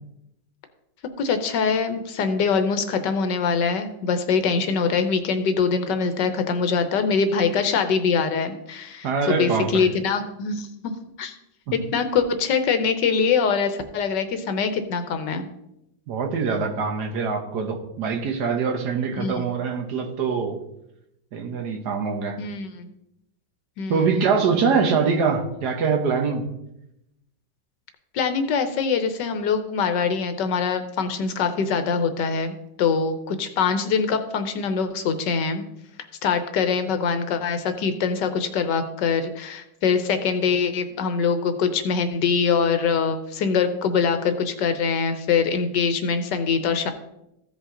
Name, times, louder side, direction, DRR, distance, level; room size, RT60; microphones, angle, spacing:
voice 1, 1.2-10.9 11.2-11.4 11.7-15.5 19.2-19.4 22.4-22.9 23.8-24.1 28.1-35.6 36.2-46.9, left 5 dB, 75° left, 1.4 m, -23 dB
voice 2, 9.0-9.9 11.7-11.8 16.1-20.6 21.3-22.4 23.9-26.5, right 5 dB, 65° right, 1.5 m, -24 dB
15.0 x 5.3 x 3.8 m
omnidirectional pair, 2.0 m